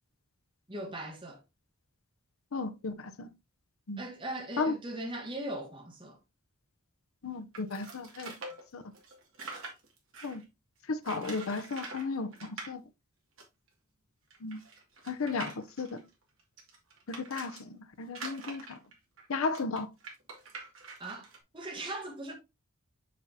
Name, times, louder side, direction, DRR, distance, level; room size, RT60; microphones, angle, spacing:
voice 1, 0.7-1.4 4.0-6.2 21.0-21.3 21.5-22.3, right 1 dB, 25° right, 1.3 m, -39 dB
voice 2, 2.5-3.3 3.9-4.0 4.6-4.7 7.2-8.3 8.7-8.8 10.2-10.4 10.9-12.8 14.4-14.6 15.1-16.0 17.1-18.8 19.3-19.9, left 4 dB, 80° left, 0.7 m, -34 dB
sound 1, 7.5-10.4 11.0-12.1 12.3-12.7 13.4-13.5 13.7-13.8 14.3-17.6 18.1-21.4, right 3 dB, 70° right, 2.3 m, -45 dB
6.1 x 6.1 x 2.8 m
head